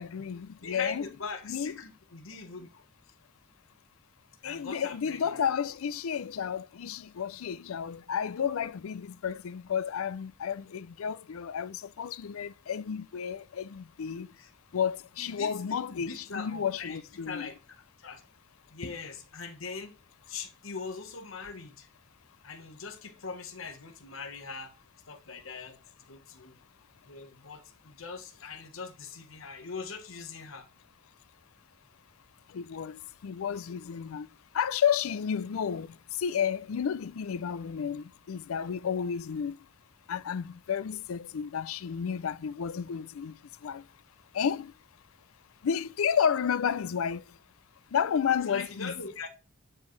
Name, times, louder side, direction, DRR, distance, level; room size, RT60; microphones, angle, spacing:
voice 1, 0.0-1.0 1.4-1.8 4.4-14.3 14.7-17.5 32.5-34.3 34.5-35.9 36.2-39.6 40.1-43.3 43.6-43.8 44.3-44.7 45.6-47.2 47.9-48.9, left 7 dB, 90° left, 0.4 m, -31 dB
voice 2, 0.6-2.7 4.4-5.4 14.4-14.5 15.2-17.0 17.3-17.5 18.0-18.2 18.7-19.9 20.3-21.9 22.4-24.7 25.1-25.8 26.1-26.6 27.1-30.7 48.5-49.3, left 5 dB, 75° left, 1.2 m, -41 dB
9.8 x 4.6 x 3.2 m
head